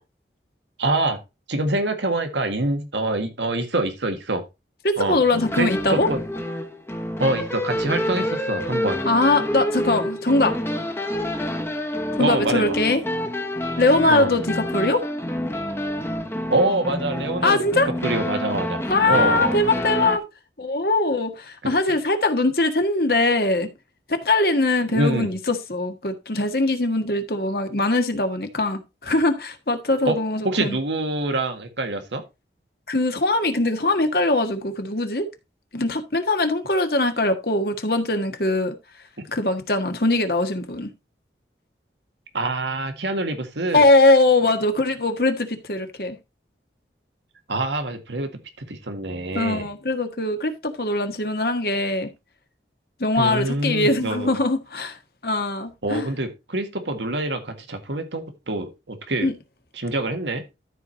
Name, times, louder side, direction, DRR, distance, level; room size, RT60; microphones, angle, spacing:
voice 1, 0.8-1.2 1.5-4.4 5.0-5.2 5.5-6.2 7.2-9.0 12.2-12.8 14.1-14.3 16.5-17.6 18.0-18.8 19.1-19.6 21.6-21.7 24.9-25.3 30.1-30.2 30.4-32.2 39.2-39.3 42.3-43.9 47.5-48.4 48.7-49.7 53.2-54.4 55.8-59.3 59.8-60.4, right 2 dB, 90° right, 1.8 m, -25 dB
voice 2, 4.8-6.1 9.0-10.6 12.2-13.0 13.8-15.0 17.4-17.9 18.9-20.2 20.6-23.7 24.2-30.8 32.9-35.3 35.7-38.7 39.3-40.9 43.7-46.2 49.3-52.1 53.0-55.0 55.2-56.1 59.2-59.3, left 2 dB, 60° left, 1.6 m, -21 dB
sound 1, 5.3-20.2, left 1 dB, 15° left, 1.1 m, -28 dB
13.0 x 4.8 x 4.1 m
head